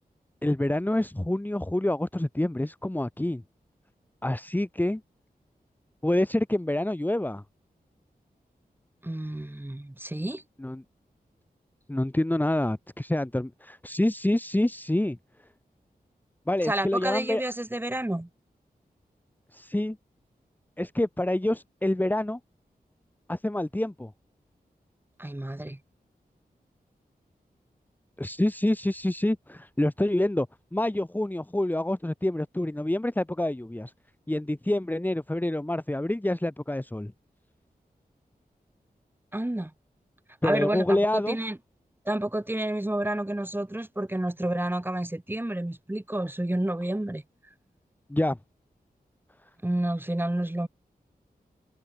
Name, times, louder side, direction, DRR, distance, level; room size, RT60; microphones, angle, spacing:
voice 1, 0.4-3.4 4.2-5.0 6.0-7.4 10.6-10.8 11.9-15.2 16.5-17.4 19.5-20.0 20.8-22.4 23.3-24.1 28.2-30.5 30.7-33.9 34.3-37.1 40.4-41.4 48.1-48.4, left 1 dB, 10° left, 2.4 m, -27 dB
voice 2, 9.0-10.4 16.6-18.3 25.2-25.8 39.3-39.7 40.4-41.6 42.1-47.2 49.6-50.7, right 1 dB, 15° right, 5.5 m, -30 dB
wide cardioid pair, 120°, 16 cm